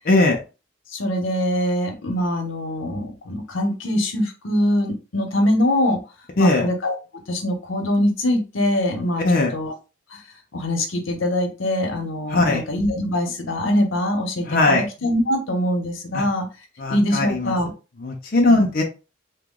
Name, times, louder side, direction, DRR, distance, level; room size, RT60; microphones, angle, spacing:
voice 1, 0.1-0.4 6.4-6.6 9.2-9.5 12.3-12.6 14.5-14.8 16.1-16.2 16.8-17.5 18.0-18.8, left 2 dB, 50° left, 0 dB, 0.6 m, -19 dB
voice 2, 0.9-6.0 6.4-6.9 7.3-9.2 9.5-9.7 10.5-16.5 16.9-17.7 18.5-18.6, left 1 dB, 90° left, 3 dB, 0.9 m, -23 dB
2.9 x 2.2 x 3.7 m, 0.30 s
head